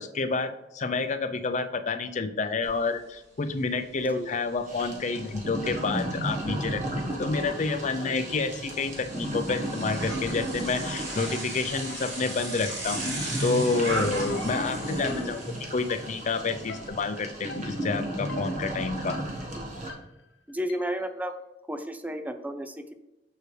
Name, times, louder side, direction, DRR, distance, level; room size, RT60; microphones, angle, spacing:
voice 1, 0.0-6.8 7.2-15.4 15.7-19.2, left 4 dB, 45° left, 9 dB, 0.5 m, -29 dB
Bicycle, 2.6-2.7 3.1-16.9, right 2 dB, 80° right, 2.5 m, -39 dB
sound 1, 4.7-19.9, right 1 dB, 45° right, 1.4 m, -34 dB
voice 2, 8.0-8.3 15.0-15.4 20.5-21.4 21.7-22.9, equal, 10° right, 9 dB, 0.4 m, -33 dB
sound 2, 8.7-9.2 9.5-21.1, left 4 dB, 85° left, 0.7 m, -50 dB
6.7 x 6.5 x 3.2 m, 0.98 s
head